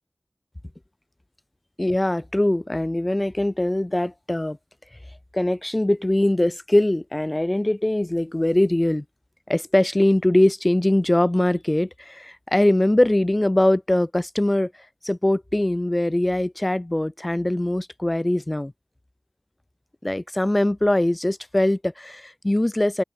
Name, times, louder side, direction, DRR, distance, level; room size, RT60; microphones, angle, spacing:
voice 1, 1.8-4.6 5.3-9.0 9.5-14.7 15.0-18.7 20.0-23.0, left 1 dB, 30° left, 0.6 m, -22 dB
open air
wide cardioid pair, 40°, 0 cm